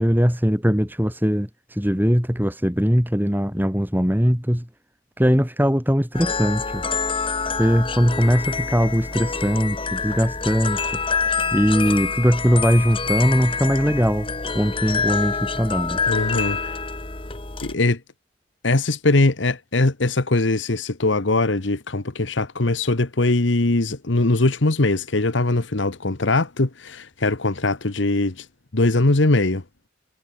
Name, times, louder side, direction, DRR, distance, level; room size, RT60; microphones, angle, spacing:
voice 1, 0.0-4.7 5.2-6.8 7.6-11.0 11.5-14.3 14.5-16.0, equal, 10° right, 4.7 m, -20 dB
sound 1, 6.1-17.7, left 5 dB, 25° left, 1.6 m, -26 dB
voice 2, 16.1-16.7 17.6-18.0 18.6-28.5 28.7-29.6, left 2 dB, 75° left, 1.4 m, -21 dB
head